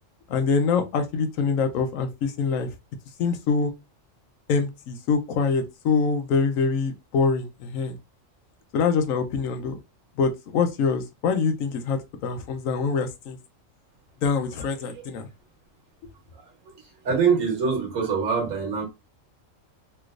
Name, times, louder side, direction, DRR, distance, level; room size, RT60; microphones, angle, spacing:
voice 1, 0.3-2.7 3.2-3.7 4.5-8.0 8.7-9.8 10.2-13.4 14.2-15.3, left 5 dB, 90° left, 1.0 m, -24 dB
voice 2, 16.3-16.8 17.0-18.8, right 6 dB, 80° right, 1.5 m, -24 dB
3.2 x 3.0 x 2.4 m
omnidirectional pair, 1.3 m